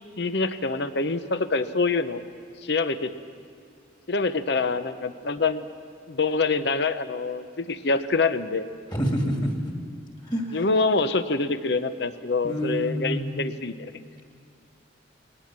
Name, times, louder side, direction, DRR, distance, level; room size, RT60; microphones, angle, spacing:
voice 1, 0.2-2.2 2.6-3.1 4.1-5.7 6.1-8.7 10.5-13.9, left 3 dB, 60° left, 12 dB, 0.8 m, -25 dB
voice 2, 8.9-9.5 10.3-10.6 12.4-13.3, equal, 20° left, 1 dB, 2.5 m, -27 dB
20.5 x 19.0 x 7.5 m, 2.2 s
head